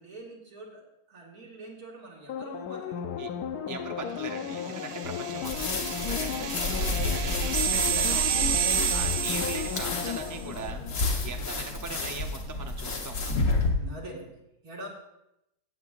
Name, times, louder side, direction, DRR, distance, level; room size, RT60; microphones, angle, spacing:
voice 1, 0.0-3.1 5.1-5.3 11.3-11.6 13.7-14.9, right 1 dB, 60° right, -3 dB, 2.6 m, -45 dB
sound 1, 2.3-11.7 12.0-12.1, left 8 dB, 75° left, 1.1 m, -35 dB
voice 2, 3.7-13.4, right 4 dB, 30° right, 4 dB, 0.3 m, -41 dB
sound 2, 4.4-10.3, right 10 dB, 85° right, 1.3 m, -31 dB
sound 3, 5.4-13.7, left 3 dB, 55° left, 1.5 m, -31 dB
15.5 x 7.9 x 2.5 m, 0.85 s
omnidirectional pair, 1.8 m